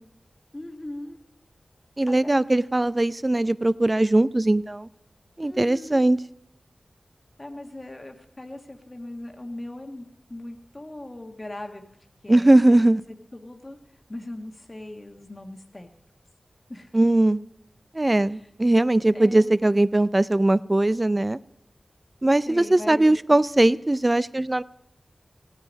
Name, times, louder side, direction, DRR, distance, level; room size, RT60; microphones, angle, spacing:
voice 1, 0.5-1.2 2.1-2.3 5.4-6.1 7.4-11.8 12.2-12.8 13.1-13.8 14.1-15.9 16.7-16.9 18.2-18.4 19.1-19.5 22.5-23.1, left 1 dB, 35° left, 4 dB, 1.3 m, -39 dB
voice 2, 2.0-4.9 5.4-6.2 12.3-13.0 16.9-17.4 17.9-21.4 22.2-24.6, right 1 dB, 30° right, 17 dB, 0.4 m, -20 dB
15.5 x 9.7 x 5.1 m, 0.82 s
cardioid pair, 45°, 0 cm